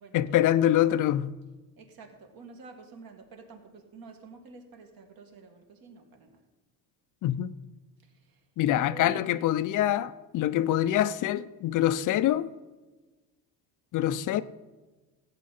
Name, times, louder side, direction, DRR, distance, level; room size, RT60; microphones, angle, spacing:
voice 1, 0.1-1.3 7.2-7.5 8.6-12.5 13.9-14.4, left 12 dB, 45° left, 0.5 m, -25 dB
voice 2, 1.8-6.4 8.3-8.4 8.8-9.6, right 4 dB, 50° right, 2.2 m, -49 dB
16.0 x 8.4 x 4.3 m
cardioid pair, 125°, 45 cm